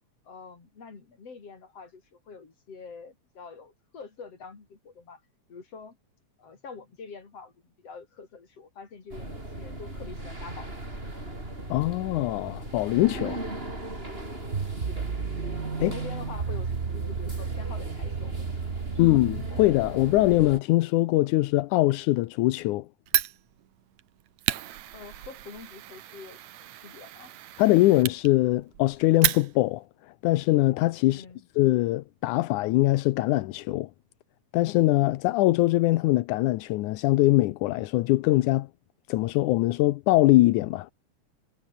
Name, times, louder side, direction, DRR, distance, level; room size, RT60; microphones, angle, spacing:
voice 1, 0.3-5.2 5.5-6.0 6.4-10.7 11.0-11.1 14.8-15.1 15.7-19.1 24.9-27.3 31.1-31.4, left 5 dB, 55° left, 5.3 m, -46 dB
sound 1, 9.1-20.6, right 1 dB, 20° right, 5.8 m, -38 dB
voice 2, 11.7-13.4 15.8-15.9 19.0-22.9 27.6-29.8 30.2-31.3 31.6-33.9 34.5-38.7 39.1-40.9, left 18 dB, 85° left, 2.2 m, -22 dB
sound 2, 14.5-19.6, right 5 dB, 40° right, 1.1 m, -33 dB
Fire, 23.1-29.9, right 13 dB, 70° right, 2.3 m, -32 dB
omnidirectional pair, 3.4 m